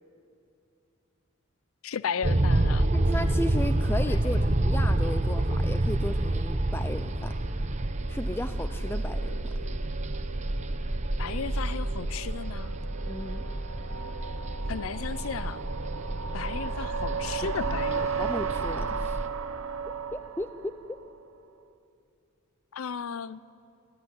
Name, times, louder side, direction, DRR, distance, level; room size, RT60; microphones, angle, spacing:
voice 1, 1.8-2.9 11.2-12.8 14.7-15.6 16.3-18.3 22.7-23.4, left 6 dB, 80° left, 17 dB, 0.5 m, -35 dB
sound 1, 2.2-19.3, right 1 dB, 35° right, 0.9 m, -28 dB
voice 2, 2.9-7.3 8.1-9.6 13.1-13.5 18.0-19.2 20.1-20.7, left 1 dB, 10° left, 9 dB, 0.5 m, -35 dB
sound 2, 6.2-21.2, right 6 dB, 80° right, 0.8 m, -37 dB
25.0 x 16.5 x 9.8 m, 2.7 s
head